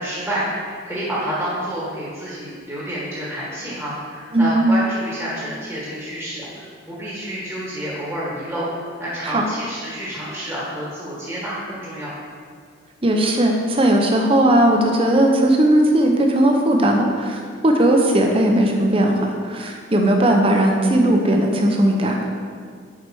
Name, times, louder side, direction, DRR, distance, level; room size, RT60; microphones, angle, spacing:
voice 1, 0.0-12.2, equal, 5° right, -7 dB, 1.3 m, -29 dB
voice 2, 4.3-4.7 9.2-9.4 13.0-22.3, right 1 dB, 25° right, 2 dB, 0.7 m, -17 dB
7.5 x 4.9 x 4.7 m, 2.1 s
head